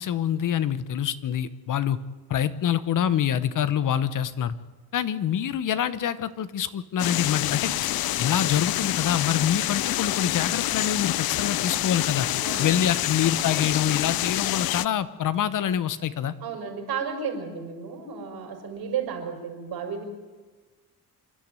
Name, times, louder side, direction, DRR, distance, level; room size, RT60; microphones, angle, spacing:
voice 1, 0.0-2.0 2.3-4.5 4.9-7.9 8.2-12.3 12.6-16.3, left 9 dB, 55° left, 15 dB, 1.0 m, -26 dB
sound 1, 7.0-14.9, left 15 dB, 75° left, 0.6 m, -27 dB
voice 2, 12.4-12.7 16.4-20.0, right 6 dB, 80° right, 3 dB, 5.5 m, -33 dB
27.0 x 12.0 x 9.1 m, 1.3 s
cardioid pair, 150°, 37 cm